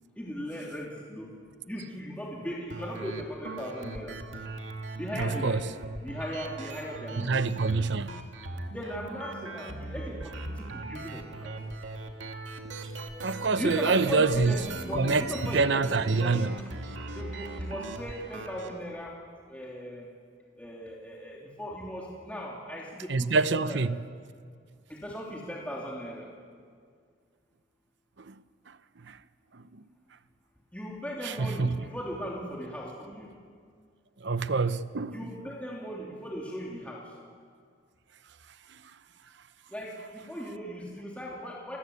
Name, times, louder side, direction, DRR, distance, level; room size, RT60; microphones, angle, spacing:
voice 1, 0.2-1.3 1.7-4.2 5.0-5.7 6.0-7.5 8.7-11.5 13.5-16.5 17.1-19.1 19.5-20.1 20.6-23.8 24.9-26.3 30.7-33.3 35.1-37.1 39.7-41.8, equal, 10° left, 3.0 m, -38 dB
sound 1, 2.7-18.7, right 2 dB, 90° right, 2.4 m, -39 dB
voice 2, 5.2-5.6 7.2-8.1 12.8-14.5 14.9-16.6 23.1-24.0 28.2-28.3 28.7-28.8 29.0-29.2 29.5-29.8 31.2-31.9 34.2-35.2 38.7-38.8, right 4 dB, 70° right, 0.8 m, -27 dB
29.5 x 20.5 x 8.4 m
head